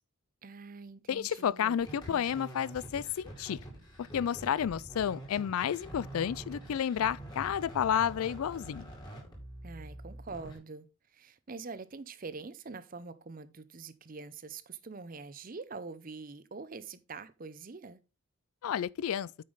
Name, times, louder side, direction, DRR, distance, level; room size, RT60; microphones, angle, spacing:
voice 1, 0.4-2.0 9.6-18.0, right 4 dB, 40° right, 0.6 m, -45 dB
voice 2, 1.1-3.6 4.0-8.9 18.6-19.3, left 9 dB, 80° left, 0.3 m, -31 dB
sound 1, 1.8-10.6, right 1 dB, 20° left, 2.2 m, -46 dB
8.7 x 5.3 x 3.9 m
head